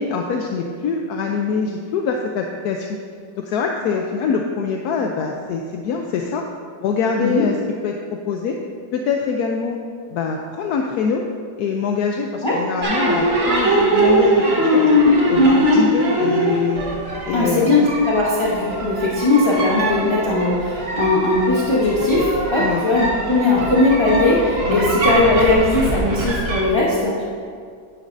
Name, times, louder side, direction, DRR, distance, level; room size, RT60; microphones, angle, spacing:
voice 1, 0.0-3.0 3.4-6.4 6.8-7.6 7.8-8.6 8.9-9.8 10.1-11.2 11.6-14.9 15.3-16.8 17.2-17.9 22.6-22.8 24.7-24.9, left 5 dB, 70° left, 2 dB, 1.0 m, -24 dB
sound 1, 12.8-26.6, equal, 35° right, 1.4 m, -20 dB
voice 2, 17.3-27.2, left 2 dB, 30° left, -6 dB, 0.5 m, -18 dB
10.5 x 9.2 x 2.6 m, 2.1 s
omnidirectional pair, 2.0 m